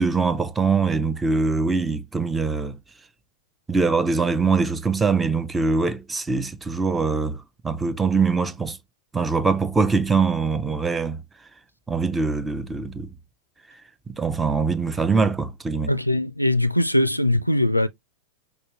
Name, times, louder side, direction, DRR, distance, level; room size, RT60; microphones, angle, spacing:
voice 1, 0.0-2.8 3.7-8.8 9.1-11.2 11.9-13.1 14.1-15.9, right 4 dB, 10° right, 0.5 m, -23 dB
voice 2, 15.9-17.9, left 1 dB, 90° left, 0.4 m, -21 dB
5.3 x 2.3 x 3.1 m
figure-of-eight pair, 90°, 0 cm